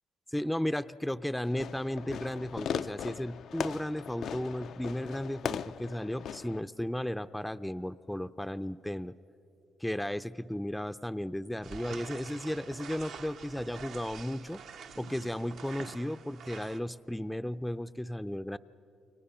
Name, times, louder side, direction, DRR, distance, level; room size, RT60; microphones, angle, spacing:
voice 1, 0.3-9.1 9.8-14.6 15.0-18.6, left 1 dB, 5° left, 12 dB, 0.4 m, -34 dB
Fireworks, 1.4-6.6, left 8 dB, 70° left, 0.4 m, -39 dB
sound 1, 11.6-16.8, right 6 dB, 75° right, 1.1 m, -46 dB
29.5 x 22.5 x 5.6 m, 2.9 s
cardioid pair, 80°, 0 cm